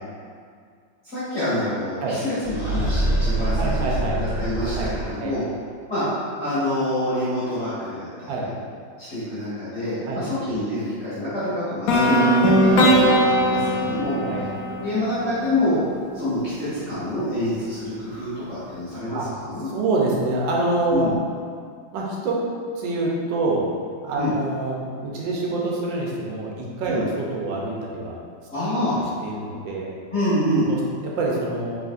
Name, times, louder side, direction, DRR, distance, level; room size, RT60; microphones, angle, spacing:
voice 1, 1.0-3.9 4.2-5.4 5.9-6.1 6.4-8.3 9.0-14.2 14.8-15.8 16.1-19.7 20.9-21.2 24.2-24.3 26.9-27.1 28.5-29.0 30.1-30.7, left 1 dB, 40° left, -13 dB, 1.3 m, -26 dB
sound 1, 2.4-5.4, right 1 dB, 45° right, 1.8 m, -25 dB
voice 2, 3.6-4.2 4.8-4.9 5.2-5.3 8.3-8.5 10.1-10.2 12.4-12.6 13.5-13.9 14.3-14.4 19.1-19.2 19.6-21.1 21.9-22.5 22.8-23.7 24.0-28.1 28.7-28.8 29.2-29.9 30.7-31.7, right 2 dB, 80° right, -3 dB, 1.4 m, -26 dB
sound 2, 11.9-15.8, equal, 80° left, 0.8 m, -19 dB
4.9 x 3.4 x 2.5 m, 2.1 s
omnidirectional pair, 2.0 m